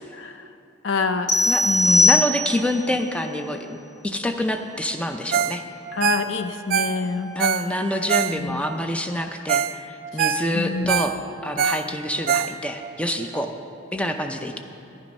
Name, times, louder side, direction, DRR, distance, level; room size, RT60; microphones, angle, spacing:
voice 1, 0.1-0.5 0.8-1.4 1.6-2.3 5.9-7.3 8.4-8.6 10.1-10.2 10.5-11.0, left 4 dB, 80° left, 8 dB, 0.7 m, -26 dB
sound 1, 1.3-2.8, left 2 dB, 40° left, 0.9 m, -19 dB
voice 2, 1.5-3.8 4.0-5.6 7.4-9.7 10.1-11.1 11.4-13.5 13.9-14.6, equal, 5° left, 5 dB, 0.5 m, -26 dB
Ringtone, 5.3-5.6 5.9-8.7 9.2-9.3 9.5-9.8 10.0-12.9 13.4-13.5, right 7 dB, 50° right, 0.3 m, -24 dB
11.5 x 11.0 x 5.3 m, 2.7 s
head